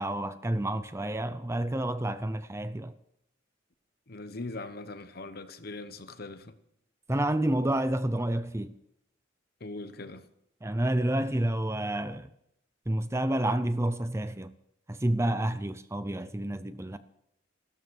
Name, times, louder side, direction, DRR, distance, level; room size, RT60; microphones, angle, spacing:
voice 1, 0.0-3.0 7.1-8.7 10.6-12.3 12.9-14.5 14.9-17.0, right 1 dB, 15° right, 0.6 m, -29 dB
voice 2, 4.1-6.5 9.6-10.3, left 2 dB, 55° left, 1.1 m, -41 dB
15.5 x 13.0 x 6.3 m
head